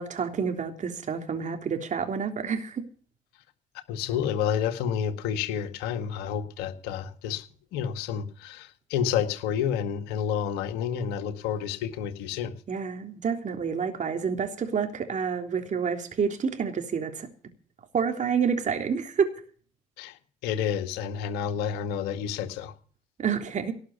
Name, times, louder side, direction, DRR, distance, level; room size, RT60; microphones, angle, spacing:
voice 1, 0.0-2.8 12.7-17.3 17.9-19.3 23.2-23.7, right 6 dB, 45° right, 3.4 m, -28 dB
voice 2, 3.9-7.5 7.7-12.5 20.0-22.7, left 8 dB, 75° left, 2.0 m, -30 dB
18.5 x 6.5 x 8.5 m
hypercardioid pair, 55°, 17 cm